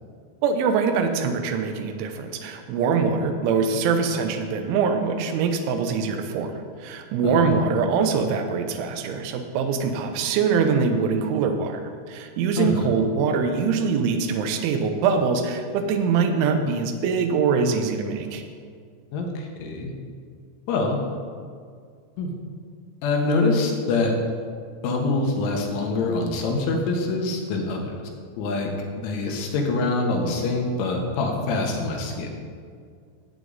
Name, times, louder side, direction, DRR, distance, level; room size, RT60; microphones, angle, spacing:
voice 1, 0.4-11.8 12.1-18.4, right 5 dB, 85° right, 5 dB, 3.2 m, -23 dB
voice 2, 12.6-12.9 19.1-19.9 20.7-21.0 22.2-22.3 23.0-24.1 24.8-28.1 28.4-28.7 29.0-32.3, left 3 dB, 85° left, 1 dB, 3.7 m, -25 dB
14.0 x 8.0 x 4.0 m, 2.1 s
omnidirectional pair, 5.4 m